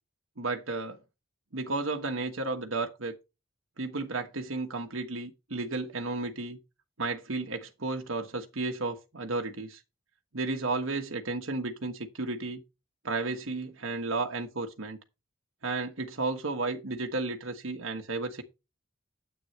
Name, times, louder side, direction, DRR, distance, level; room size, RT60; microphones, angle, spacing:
voice 1, 0.4-1.0 1.5-3.1 3.8-6.6 7.0-9.8 10.3-12.6 13.0-15.0 15.6-18.4, right 3 dB, 75° right, 1.4 m, -33 dB
9.5 x 8.6 x 3.2 m
head